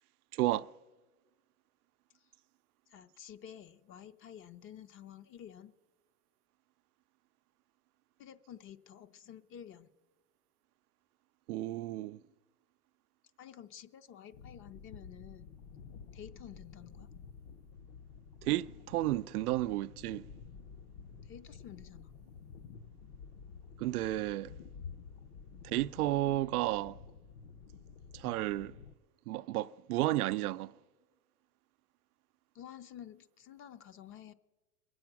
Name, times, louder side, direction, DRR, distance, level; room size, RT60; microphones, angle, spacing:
voice 1, 0.3-0.7 11.5-12.2 18.4-20.3 23.8-24.5 25.6-27.0 28.1-28.7 29.3-30.7, right 16 dB, 75° right, 0.6 m, -32 dB
voice 2, 2.9-5.7 8.2-9.9 13.4-15.6 16.1-17.1 21.2-22.1 25.5-25.7 32.5-34.3, left 10 dB, 30° left, 0.6 m, -51 dB
sound 1, 14.3-28.9, left 6 dB, 55° left, 1.0 m, -51 dB
22.5 x 7.8 x 6.0 m
hypercardioid pair, 110°, 45 cm